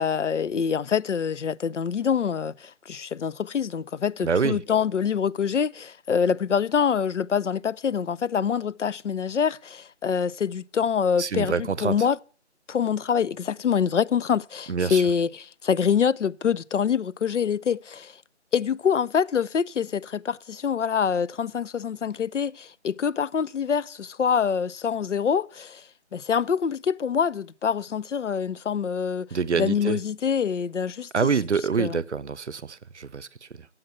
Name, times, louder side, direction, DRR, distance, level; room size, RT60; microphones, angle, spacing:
voice 1, 0.0-12.2 12.7-18.2 18.5-25.8 26.1-29.3 29.6-31.1 31.8-32.0, left 7 dB, 85° left, 0.5 m, -25 dB
voice 2, 4.2-4.6 11.2-12.0 14.7-15.0 29.3-30.0 31.1-33.7, right 5 dB, 75° right, 0.6 m, -26 dB
9.8 x 7.8 x 5.9 m
figure-of-eight pair, 160°, 35 cm